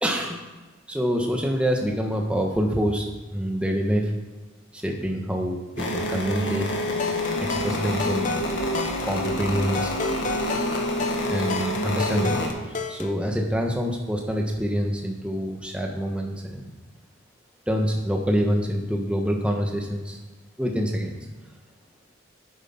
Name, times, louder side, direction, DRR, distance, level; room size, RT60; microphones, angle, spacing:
voice 1, 0.0-0.4 0.9-3.0 3.3-4.1 4.7-6.7 7.4-8.3 9.1-9.9 11.2-12.5 12.9-16.7 17.7-20.2 20.6-21.2, equal, 5° right, 1 dB, 1.3 m, -26 dB
sound 1, 5.8-12.5, left 1 dB, 65° left, 1.8 m, -27 dB
sound 2, 6.8-13.1, left 4 dB, 40° left, 0.8 m, -33 dB
9.7 x 8.2 x 5.8 m, 1.2 s
head